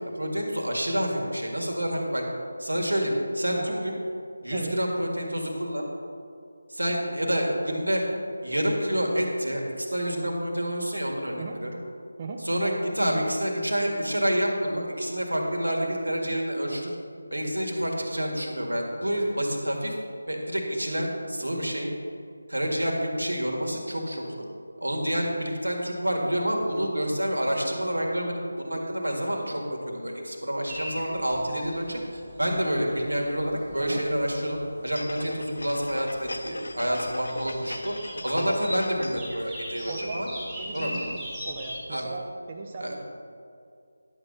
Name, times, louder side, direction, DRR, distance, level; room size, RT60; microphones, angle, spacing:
voice 1, 0.2-2.2 2.6-4.0 4.4-5.9 6.7-8.0 8.4-11.7 12.5-16.9 17.3-20.0 20.3-21.9 22.5-24.4 24.8-29.6 29.9-40.3 40.7-40.9 41.9-42.1 42.8-43.0, equal, 85° right, 0 dB, 1.8 m, -28 dB
sound 1, 30.7-41.8, equal, 5° right, 2.2 m, -41 dB
voice 2, 33.7-34.0 39.9-40.2 40.5-43.0, right 3 dB, 30° right, 1 dB, 0.6 m, -38 dB
sound 2, 34.9-39.3 39.7-39.8, left 1 dB, 70° left, 0.6 m, -38 dB
10.5 x 6.7 x 4.0 m, 2.4 s
figure-of-eight pair, 160°, 0 cm